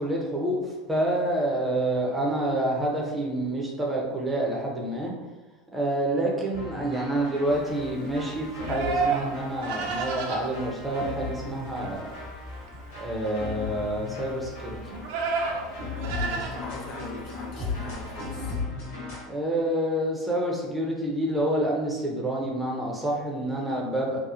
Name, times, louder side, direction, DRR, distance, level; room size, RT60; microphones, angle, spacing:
voice 1, 0.0-5.1 5.7-12.1 13.0-14.8 19.3-24.2, right 1 dB, 10° right, -2 dB, 0.6 m, -28 dB
sound 1, 6.5-19.2, left 3 dB, 85° left, 1.2 m, -37 dB
Livestock farm animals working animals, 7.5-18.5, right 4 dB, 70° right, 0.4 m, -34 dB
voice 2, 16.0-18.5, left 2 dB, 55° left, -1 dB, 0.6 m, -41 dB
2.9 x 2.0 x 2.4 m, 1.1 s
hypercardioid pair, 95°, 0 cm